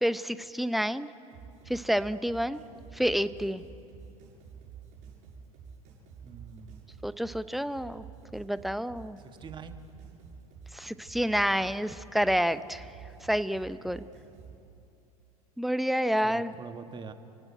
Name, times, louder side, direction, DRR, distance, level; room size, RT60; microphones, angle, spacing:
voice 1, 0.0-1.1 1.7-2.6 2.9-3.6 7.0-8.0 8.3-9.2 10.7-12.8 13.2-14.0 15.6-16.5, equal, ahead, 14 dB, 0.7 m, -29 dB
sound 1, 1.3-14.5, right 6 dB, 40° right, 7.8 m, -49 dB
voice 2, 6.2-6.9 9.2-9.8 13.7-14.0 16.2-17.1, right 6 dB, 25° right, 8 dB, 1.7 m, -45 dB
28.5 x 17.0 x 8.7 m, 2.8 s
figure-of-eight pair, 80°, 19 cm